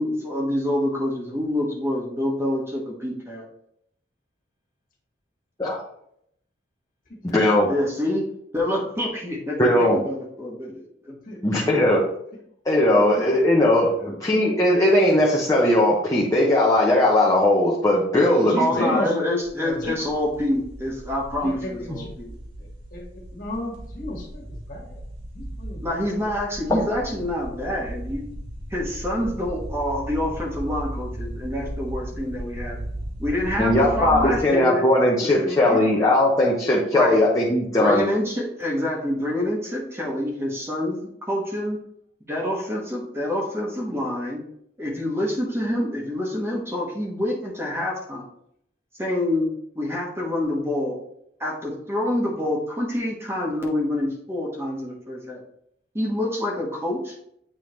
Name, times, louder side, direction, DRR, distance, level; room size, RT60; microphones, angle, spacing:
voice 1, 0.0-3.4 7.7-8.2 8.5-11.1 18.6-22.3 25.8-28.3 28.7-32.8 33.2-35.8 36.9-37.2 37.8-41.8 42.3-44.4 44.8-48.2 49.0-51.0 51.4-55.4 55.9-57.1, left 1 dB, 15° right, -2 dB, 1.3 m, -27 dB
voice 2, 7.3-7.7 9.6-10.0 11.4-12.0 12.6-19.1 26.7-26.8 33.6-38.1, left 1 dB, 20° left, -4 dB, 1.0 m, -19 dB
voice 3, 11.1-11.4 13.2-13.3 13.9-14.1 18.4-19.1 19.5-19.9 21.4-22.1 22.6-23.0 23.3-25.0 25.3-26.1, left 1 dB, 50° left, -1 dB, 1.8 m, -33 dB
sound 1, 19.4-34.4, right 1 dB, 80° right, 1.5 m, -36 dB
8.8 x 3.7 x 3.2 m, 0.72 s
head